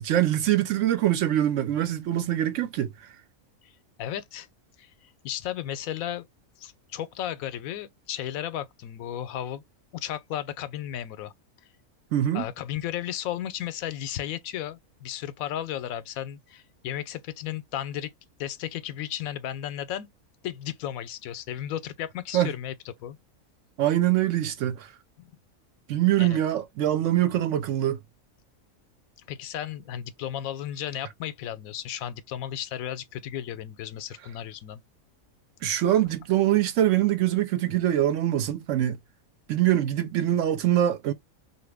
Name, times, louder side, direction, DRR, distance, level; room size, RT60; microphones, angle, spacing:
voice 1, 0.0-2.9 12.1-12.5 22.3-22.5 23.8-24.9 25.9-28.0 35.6-39.0 39.5-41.1, right 12 dB, 70° right, 0.9 m, -24 dB
voice 2, 4.0-4.5 4.8-6.3 6.6-9.6 9.9-11.3 12.3-18.1 18.4-20.1 20.4-23.2 25.2-25.3 26.2-26.4 29.3-34.8, left 11 dB, 80° left, 1.0 m, -34 dB
2.9 x 2.5 x 3.3 m
omnidirectional pair, 1.5 m